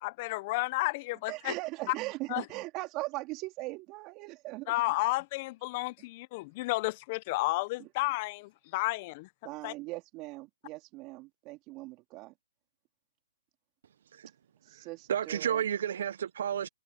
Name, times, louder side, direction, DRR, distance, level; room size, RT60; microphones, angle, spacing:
voice 1, 0.0-1.5 2.3-2.4 4.7-9.3 9.6-9.7, left 22 dB, 35° left, 0.6 m, -32 dB
voice 2, 1.3-4.7 7.8-7.9 9.4-12.3 14.6-15.6, right 21 dB, 25° right, 3.0 m, -40 dB
voice 3, 14.7-16.7, right 9 dB, 60° right, 0.7 m, -32 dB
hypercardioid pair, 150°, 0 cm